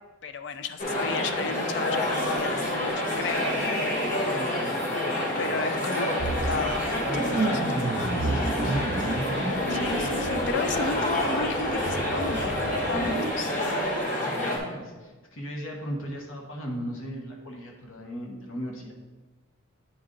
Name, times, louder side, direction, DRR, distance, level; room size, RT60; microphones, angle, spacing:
voice 1, 0.2-3.5 4.2-4.6 5.4-7.6 7.9-8.1 9.7-14.5, left 4 dB, 55° left, 9 dB, 0.4 m, -34 dB
sound 1, 0.8-14.6, left 1 dB, 40° left, 1.1 m, -28 dB
voice 2, 4.3-5.7 6.9-9.0 10.7-11.3 14.2-18.9, equal, 75° left, 0 dB, 1.2 m, -38 dB
sound 2, 6.2-13.3, right 2 dB, 35° right, 0.4 m, -31 dB
8.9 x 3.9 x 3.8 m, 1.2 s
head